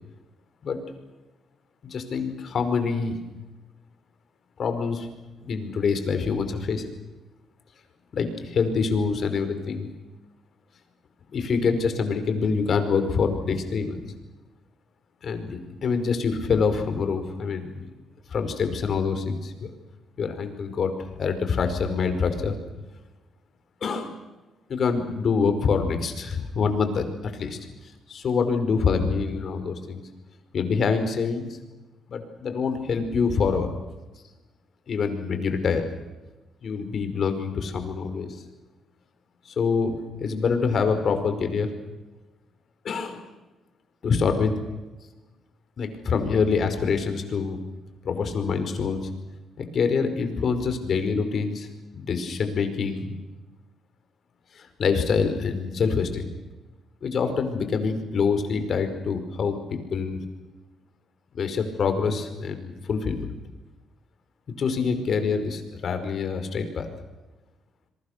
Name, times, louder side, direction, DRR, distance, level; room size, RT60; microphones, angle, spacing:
voice 1, 1.8-3.2 4.6-5.1 5.5-6.9 8.1-9.9 11.3-14.0 15.2-17.9 18.3-19.7 20.2-22.5 23.8-24.1 24.7-27.6 28.1-30.0 30.5-31.5 32.1-33.7 34.9-35.8 36.6-38.4 39.4-41.7 42.8-43.2 44.0-44.5 45.8-47.6 48.0-49.1 49.6-51.7 51.9-53.1 54.5-56.3 57.0-60.2 61.3-63.3 64.6-66.9, left 5 dB, 55° left, 8 dB, 5.0 m, -25 dB
27.0 x 23.0 x 6.7 m, 1.1 s
cardioid pair, 90°, 0 cm